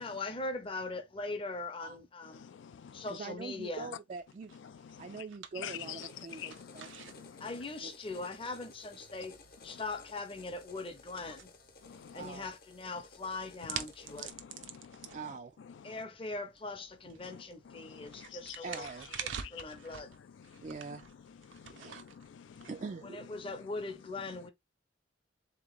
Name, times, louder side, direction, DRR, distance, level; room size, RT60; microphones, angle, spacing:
voice 1, 0.0-2.4 2.9-3.9 7.4-9.4 9.6-11.5 12.1-14.3 15.8-18.9 19.2-20.1 23.0-24.5, left 3 dB, 30° left, 0.7 m, -41 dB
voice 2, 2.3-3.1 4.6-5.2 5.5-7.5 11.8-12.3 14.1-15.2 15.6-16.0 17.2-18.6 19.4-19.8 20.4-21.0 21.3-22.7, left 9 dB, 75° left, 0.3 m, -49 dB
voice 3, 3.1-4.5 5.0-7.1 7.8-7.9 12.1-12.5 15.1-15.6 18.6-19.1 20.6-21.0 21.6-22.0 22.6-23.3, right 4 dB, 40° right, 0.3 m, -44 dB
sound 1, 4.1-23.3, right 8 dB, 85° right, 0.6 m, -49 dB
sound 2, 5.6-14.3, left 3 dB, 50° left, 0.9 m, -56 dB
3.7 x 3.0 x 3.6 m
head